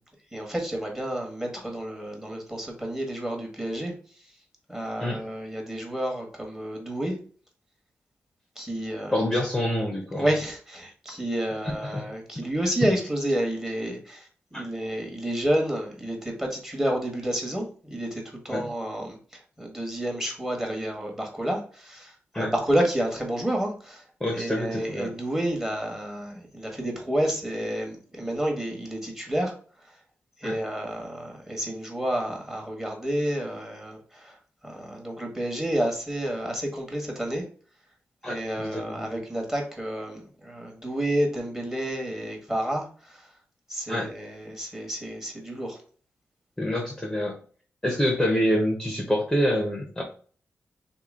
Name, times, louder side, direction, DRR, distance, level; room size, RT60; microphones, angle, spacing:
voice 1, 0.3-3.9 4.7-7.2 8.6-9.2 10.1-24.0 24.3-29.6 30.4-34.4 34.6-37.4 38.3-43.3 43.7-45.8, right 1 dB, 10° right, 1 dB, 1.4 m, -30 dB
voice 2, 9.1-10.3 11.8-12.0 14.5-14.6 18.5-18.7 22.3-22.5 24.2-25.1 30.4-30.6 38.2-39.2 43.9-44.1 46.6-47.4 47.8-50.0, equal, 10° left, 0 dB, 0.9 m, -27 dB
3.0 x 2.8 x 3.8 m, 0.43 s
cardioid pair, 75°, 5 cm